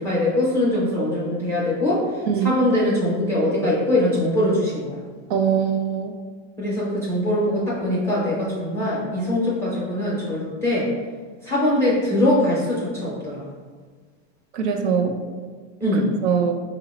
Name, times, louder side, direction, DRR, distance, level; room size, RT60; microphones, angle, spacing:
voice 1, 0.0-5.0 6.6-10.9 11.4-13.5 15.8-16.1, left 1 dB, 5° left, -7 dB, 0.4 m, -22 dB
voice 2, 5.3-6.1 14.5-15.2 16.2-16.5, right 7 dB, 60° right, 4 dB, 0.6 m, -22 dB
4.5 x 2.0 x 4.0 m, 1.5 s
supercardioid pair, 170°, 38 cm